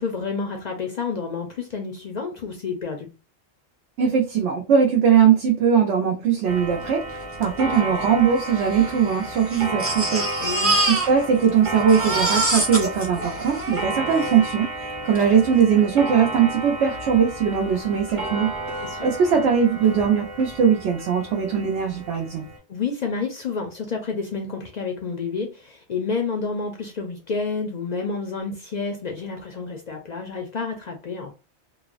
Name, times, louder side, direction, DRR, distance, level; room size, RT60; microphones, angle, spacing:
voice 1, 0.0-3.1 10.4-10.8 18.8-19.1 22.7-31.3, left 4 dB, 55° left, 3 dB, 0.5 m, -29 dB
voice 2, 4.0-7.0 7.4-10.3 10.9-14.7 15.0-18.5 19.0-22.4, right 7 dB, 80° right, 1 dB, 0.9 m, -20 dB
Clock, 6.5-22.6, right 2 dB, 50° right, 0.9 m, -32 dB
Crying sobbing, 7.4-7.5 7.7-7.8 8.6-11.5 11.7-14.3 15.1-15.2 15.6-15.7, right 2 dB, 15° right, 0.5 m, -25 dB
3.1 x 2.0 x 2.3 m, 0.31 s
omnidirectional pair, 1.2 m